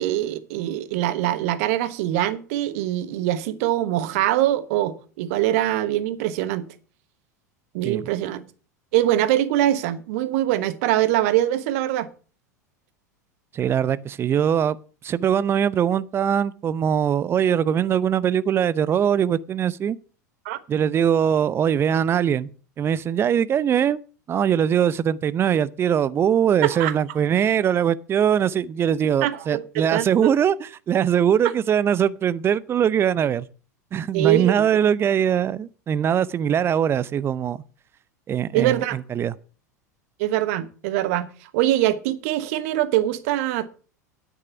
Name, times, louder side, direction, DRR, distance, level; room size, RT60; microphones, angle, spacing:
voice 1, 0.0-6.6 7.7-8.4 8.9-12.1 20.4-20.6 26.6-26.9 29.2-29.6 29.9-30.3 34.1-34.6 38.5-39.0 40.2-43.7, right 13 dB, 55° right, 1.1 m, -23 dB
voice 2, 13.5-14.8 15.0-20.0 20.7-22.5 22.8-24.0 24.3-33.5 33.9-37.6 38.3-39.3, right 8 dB, 25° right, 0.6 m, -21 dB
9.9 x 8.6 x 5.8 m
figure-of-eight pair, 85°, 9 cm